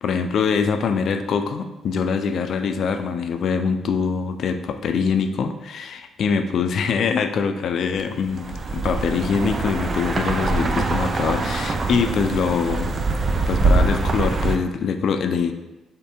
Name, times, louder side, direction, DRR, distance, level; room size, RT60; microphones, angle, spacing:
voice 1, 0.0-12.9 13.4-15.5, left 6 dB, 65° left, 8 dB, 0.4 m, -23 dB
sound 1, 8.2-14.6, right 3 dB, 40° right, 0.4 m, -23 dB
3.7 x 3.3 x 4.2 m, 1.0 s
cardioid pair, 90°, 0 cm